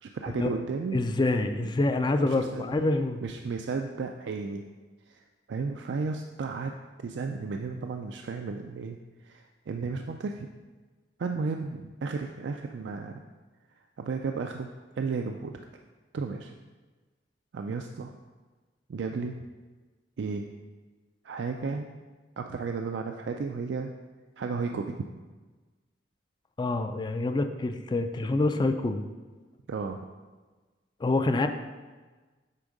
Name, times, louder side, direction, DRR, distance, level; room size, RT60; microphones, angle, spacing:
voice 1, 0.0-1.0 2.2-2.6 3.2-4.6 5.1-6.7 7.0-10.5 11.2-13.2 14.0-14.7 15.0-15.6 16.1-16.5 17.5-18.2 18.9-19.4 20.2-20.5 21.2-21.9 22.4-23.9 24.4-25.0 29.7-30.0, right 4 dB, 70° right, 4 dB, 0.4 m, -33 dB
voice 2, 0.9-3.2 26.6-29.0 31.0-31.5, left 2 dB, 25° left, 8 dB, 0.4 m, -26 dB
8.3 x 3.5 x 5.2 m, 1.3 s
head